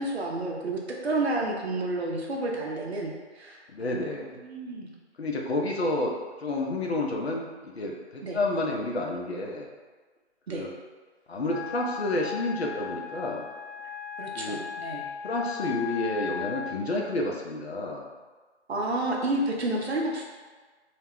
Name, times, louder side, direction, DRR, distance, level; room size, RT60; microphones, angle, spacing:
voice 1, 0.0-4.1 4.4-4.9 8.2-8.4 10.5-10.7 14.2-15.1 18.7-20.2, right 2 dB, 65° right, -1 dB, 0.6 m, -30 dB
voice 2, 3.7-4.4 5.2-9.7 10.5-10.7 11.3-13.5 14.3-14.6 15.2-18.1, left 2 dB, 60° left, -1 dB, 0.6 m, -30 dB
Wind instrument woodwind instrument, 11.4-16.8, left 8 dB, 30° left, 1.0 m, -37 dB
2.3 x 2.1 x 3.5 m, 1.4 s
figure-of-eight pair, 155°, 35 cm